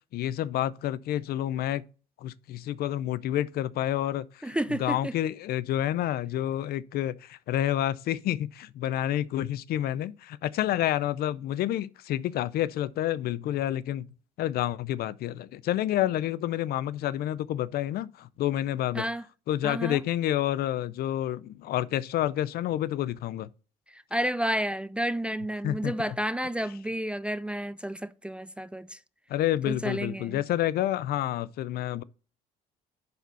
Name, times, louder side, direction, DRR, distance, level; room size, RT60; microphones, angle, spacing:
voice 1, 0.1-1.8 2.2-14.1 14.4-19.1 19.5-23.5 25.6-25.9 29.3-32.0, left 12 dB, 65° left, 0.5 m, -29 dB
voice 2, 4.4-5.1 18.9-19.2 19.6-20.0 23.9-29.0 29.7-30.4, right 1 dB, 5° right, 0.3 m, -31 dB
10.5 x 4.2 x 4.0 m
cardioid pair, 110°, 17 cm